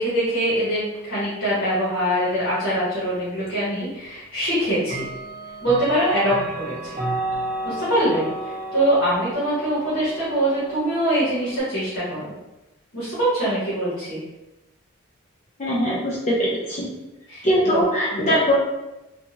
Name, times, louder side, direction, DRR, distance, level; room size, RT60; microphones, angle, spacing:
voice 1, 0.0-5.1 5.6-7.0 7.6-12.3 12.9-14.2 17.3-17.8 18.1-18.3, right 1 dB, 70° left, -10 dB, 1.1 m, -23 dB
Clock, 3.5-3.6 4.8-11.6, right 1 dB, 30° right, 0.8 m, -32 dB
voice 2, 15.6-16.9 17.4-18.5, equal, 30° left, -4 dB, 0.4 m, -21 dB
2.6 x 2.3 x 2.7 m, 0.98 s
head